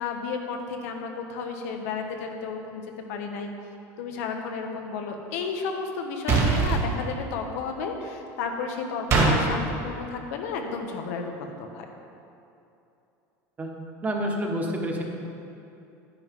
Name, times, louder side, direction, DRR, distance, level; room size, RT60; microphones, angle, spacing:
voice 1, 0.0-2.8 3.1-3.5 4.0-11.8, left 5 dB, 85° left, 3 dB, 1.2 m, -32 dB
sound 1, 6.3-6.8 9.1-9.3, right 4 dB, 40° right, 2.0 m, -20 dB
voice 2, 14.0-15.0, equal, 20° right, 1 dB, 1.3 m, -28 dB
9.6 x 9.3 x 3.8 m, 2.8 s
supercardioid pair, 130°, 8 cm